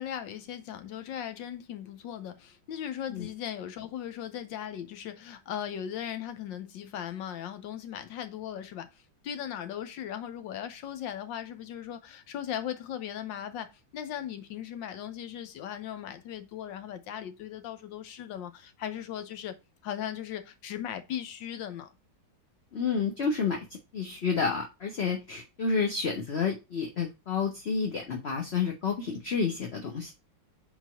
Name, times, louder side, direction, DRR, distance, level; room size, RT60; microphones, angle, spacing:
voice 1, 0.0-19.6 19.8-21.9, left 10 dB, 70° left, 1.4 m, -38 dB
voice 2, 22.7-23.7 23.9-30.1, left 5 dB, 45° left, 0.9 m, -30 dB
4.6 x 4.1 x 5.6 m
omnidirectional pair, 2.2 m